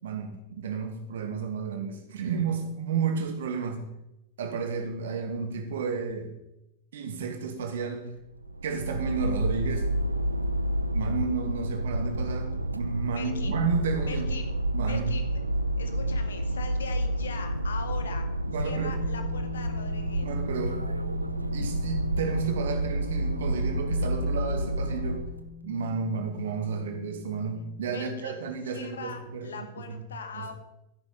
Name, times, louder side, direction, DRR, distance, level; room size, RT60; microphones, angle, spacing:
voice 1, 0.0-3.8 4.4-6.3 6.9-8.1 8.6-9.9 10.9-14.3 14.7-15.1 18.5-18.9 20.2-20.8 21.5-25.2 25.6-30.0 30.3-30.5, right 5 dB, 60° right, 5 dB, 2.4 m, -32 dB
sound 1, 8.1-25.4, right 1 dB, 85° right, 0.8 m, -29 dB
voice 2, 13.1-13.6 14.1-14.5 14.9-15.4 15.8-18.3 18.6-20.3 27.9-30.5, left 5 dB, 65° left, 7 dB, 1.9 m, -41 dB
sound 2, 18.8-27.9, left 5 dB, 15° left, 2.0 m, -43 dB
13.0 x 10.5 x 5.5 m, 0.87 s
figure-of-eight pair, 90°, 0 cm